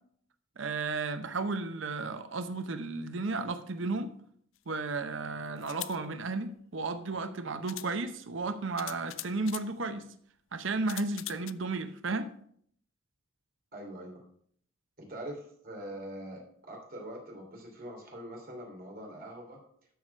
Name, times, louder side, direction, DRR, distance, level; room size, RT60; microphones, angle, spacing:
voice 1, 0.6-4.1 4.7-10.0 10.5-12.3, right 3 dB, 65° right, 0.8 m, -33 dB
sound 1, 4.6-4.7 5.6-6.0 7.1-7.2 7.7-7.9 8.8-9.7 10.9-11.5, left 16 dB, 70° left, 0.4 m, -41 dB
voice 2, 13.7-14.2 15.0-19.6, right 1 dB, 45° right, 3.1 m, -43 dB
12.5 x 4.8 x 5.5 m
head